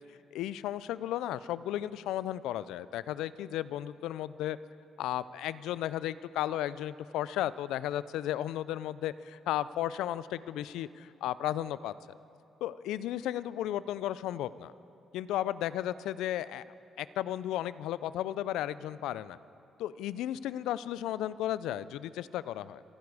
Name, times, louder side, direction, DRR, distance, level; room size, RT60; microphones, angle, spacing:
voice 1, 0.3-4.6 5.0-11.9 12.6-14.7 15.1-16.6 17.0-19.4 19.8-22.8, left 12 dB, 90° left, 17 dB, 0.3 m, -34 dB
27.0 x 9.6 x 4.8 m, 2.7 s
cardioid pair, 90°, 0 cm